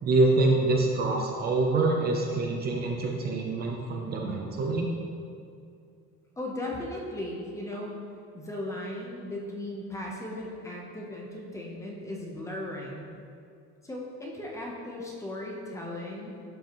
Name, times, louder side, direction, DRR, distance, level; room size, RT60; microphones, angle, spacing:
voice 1, 0.0-4.9, right 2 dB, 35° right, 1 dB, 0.7 m, -25 dB
voice 2, 6.4-8.0 8.3-13.1 13.8-16.4, left 1 dB, 10° left, -2 dB, 0.8 m, -37 dB
12.0 x 5.7 x 3.0 m, 2.5 s
cardioid pair, 170°, 29 cm